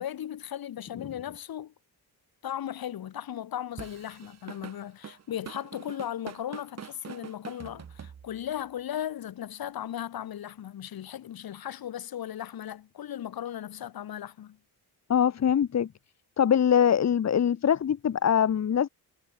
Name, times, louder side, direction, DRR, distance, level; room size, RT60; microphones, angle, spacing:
voice 1, 0.0-1.7 2.4-14.6, left 10 dB, 65° left, 4.1 m, -37 dB
Drum kit / Drum, 3.8-8.6, right 7 dB, 40° right, 4.1 m, -44 dB
voice 2, 15.1-15.9 16.4-18.9, left 8 dB, 40° left, 2.1 m, -23 dB
wide cardioid pair, 165°, 39 cm